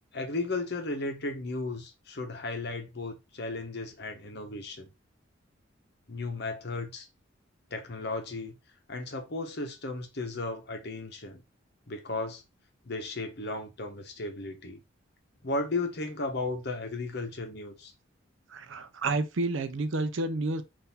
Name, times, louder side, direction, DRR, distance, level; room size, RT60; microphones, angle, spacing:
voice 1, 0.1-4.9 6.1-7.1 7.7-8.5 8.9-11.4 11.9-12.4 12.8-14.8 15.4-17.9, left 2 dB, 55° left, 0.9 m, -35 dB
voice 2, 18.5-20.6, right 2 dB, 70° right, 0.5 m, -30 dB
3.9 x 2.6 x 4.0 m
head